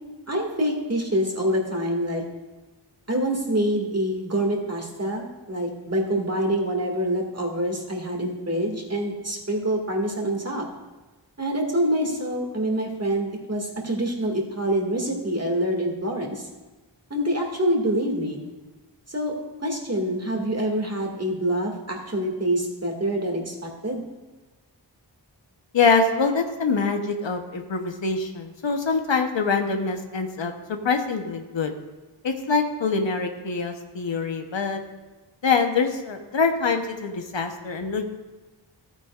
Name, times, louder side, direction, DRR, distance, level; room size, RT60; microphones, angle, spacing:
voice 1, 0.3-2.2 3.1-10.6 11.4-16.4 17.1-18.4 19.1-19.3 19.6-24.0, right 1 dB, 35° right, 0 dB, 2.1 m, -26 dB
voice 2, 25.7-30.5 30.8-31.7 32.2-34.8 35.4-38.0, left 4 dB, 75° left, 5 dB, 1.0 m, -24 dB
13.5 x 8.8 x 2.4 m, 1.2 s
wide cardioid pair, 40°, 45 cm